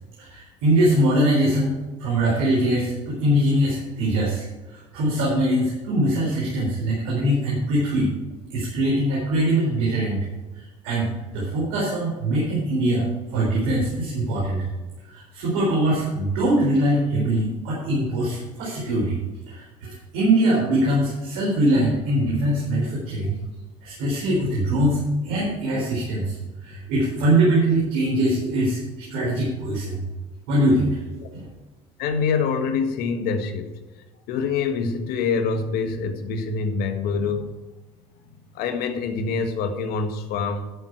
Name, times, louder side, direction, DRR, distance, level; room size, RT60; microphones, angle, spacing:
voice 1, 0.2-4.4 4.7-8.1 8.5-10.2 10.5-13.1 13.3-14.6 15.0-19.2 19.5-23.4 23.8-26.4 26.6-30.0 30.5-30.9 31.3-31.5, right 1 dB, 75° right, -5 dB, 4.4 m, -22 dB
voice 2, 32.0-33.8 34.3-37.5 38.5-40.7, left 5 dB, 70° left, 7 dB, 1.7 m, -25 dB
12.5 x 7.6 x 4.7 m, 1.2 s
hypercardioid pair, 75°, 17 cm